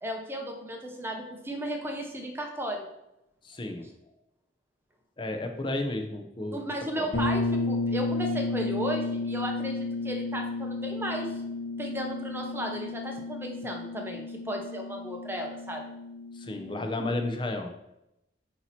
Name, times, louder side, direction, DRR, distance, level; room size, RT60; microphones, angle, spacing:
voice 1, 0.0-2.8 6.5-11.4 11.8-15.9, equal, 10° right, 2 dB, 0.8 m, -35 dB
voice 2, 3.4-3.9 5.2-6.6 7.0-7.1 16.3-17.7, left 2 dB, 25° left, 5 dB, 0.6 m, -32 dB
sound 1, 7.1-16.8, left 3 dB, 60° left, 1.1 m, -32 dB
8.5 x 2.9 x 4.1 m, 0.86 s
head